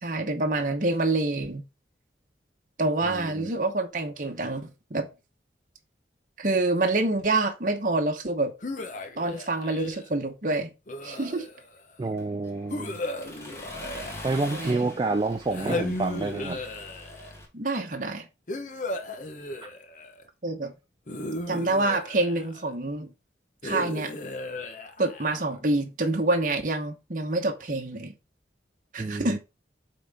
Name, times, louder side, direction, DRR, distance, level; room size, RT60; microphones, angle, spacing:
voice 1, 0.0-1.6 2.8-5.1 6.4-8.5 9.2-10.7 11.0-11.5 14.5-14.9 17.5-18.3 20.4-20.7 21.5-23.1 23.6-24.1 25.0-28.1 28.9-29.4, right 2 dB, 45° right, 1.0 m, -27 dB
voice 2, 3.0-3.5 12.0-13.0 14.2-16.6 19.6-19.7 29.0-29.4, right 3 dB, 25° right, 0.3 m, -29 dB
sound 1, 8.6-10.1 10.9-11.8 12.7-14.9 15.5-17.4 18.5-20.2 21.1-22.7 23.6-25.6, left 1 dB, 45° left, 0.9 m, -36 dB
Accelerating revving vroom, 12.2-17.4, left 1 dB, 15° left, 1.6 m, -44 dB
9.1 x 3.9 x 3.5 m
head